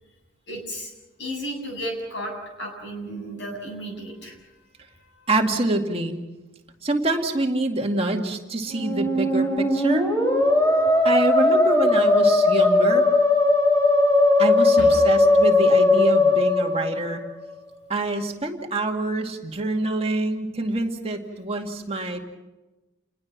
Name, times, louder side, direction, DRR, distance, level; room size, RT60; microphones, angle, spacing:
voice 1, 0.5-0.9 1.2-4.4 14.8-15.0, equal, 60° left, 2 dB, 7.6 m, -33 dB
voice 2, 5.3-6.2 6.8-10.1 11.0-13.1 14.4-17.2 17.9-22.2, right 2 dB, 30° right, 2 dB, 2.2 m, -26 dB
Musical instrument, 8.7-17.5, left 2 dB, 15° left, 3.4 m, -18 dB
29.0 x 21.0 x 6.1 m, 1.1 s
head